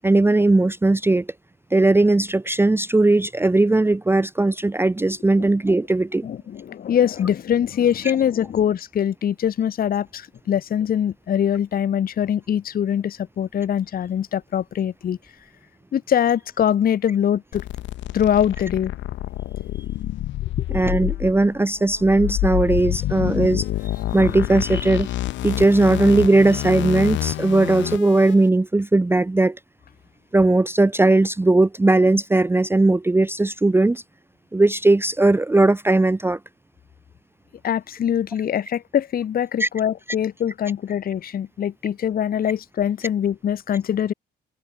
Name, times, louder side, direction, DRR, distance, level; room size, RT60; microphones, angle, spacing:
voice 1, 0.0-1.3 1.7-6.3 20.7-23.7 24.1-25.1 25.4-29.6 30.3-34.0 34.5-36.4 39.6-39.7, right 2 dB, 10° right, 0.7 m, -18 dB
voice 2, 6.2-15.2 15.9-17.6 18.1-18.9 20.7-20.8 37.6-44.1, left 9 dB, 50° left, 0.8 m, -23 dB
sound 1, 17.5-28.3, left 15 dB, 70° left, 0.4 m, -27 dB
open air
cardioid pair, 90°, 20 cm